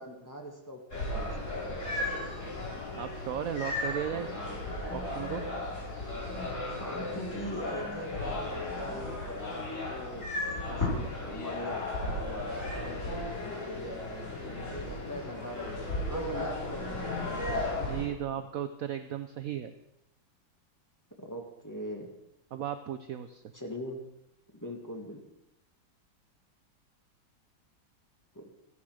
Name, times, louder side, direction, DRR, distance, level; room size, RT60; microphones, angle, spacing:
voice 1, 0.0-1.6 6.8-17.2 21.2-22.1 23.5-24.0 24.5-25.2 28.3-28.5, equal, 10° left, 0 dB, 1.6 m, -42 dB
sound 1, 0.9-18.0, left 2 dB, 35° left, 5.7 m, -35 dB
voice 2, 2.9-4.4 4.9-5.4 17.8-19.7 22.5-23.4, right 10 dB, 75° right, 10 dB, 0.8 m, -35 dB
14.0 x 9.7 x 6.4 m, 0.86 s
omnidirectional pair, 2.2 m